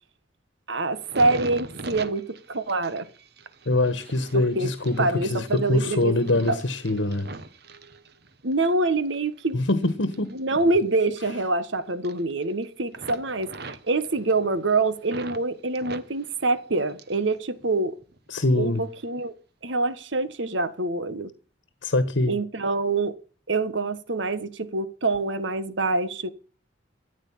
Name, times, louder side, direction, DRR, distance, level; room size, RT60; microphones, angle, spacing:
voice 1, 0.7-3.1 4.5-4.7 5.0-6.1 6.5-6.6 8.4-9.6 10.3-18.0 18.5-19.3 19.6-21.3 22.3-23.1 23.5-26.3, right 3 dB, 80° right, 1.4 m, -25 dB
sound 1, 0.9-8.6 9.1-11.7 11.9-12.6 12.9-15.4 15.8-17.3 17.6-18.3 18.9-19.1, right 3 dB, 55° right, 1.3 m, -42 dB
voice 2, 3.6-7.3 9.5-10.3 18.3-18.8 21.8-22.4, left 2 dB, 85° left, 1.5 m, -24 dB
14.0 x 9.2 x 7.4 m
head